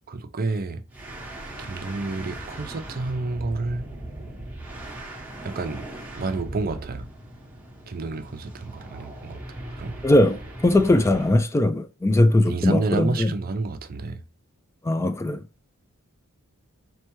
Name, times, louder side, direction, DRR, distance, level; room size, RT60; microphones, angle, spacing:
voice 1, 0.1-0.8 1.6-3.9 5.4-5.9 6.2-7.1 7.9-9.4 9.7-10.0 12.5-14.2, right 3 dB, 40° right, 0.5 m, -29 dB
sound 1, 0.9-11.4, right 1 dB, 5° right, 0.9 m, -39 dB
voice 2, 10.0-13.3 14.8-15.4, left 1 dB, 10° left, 0.3 m, -20 dB
4.4 x 3.3 x 2.9 m
head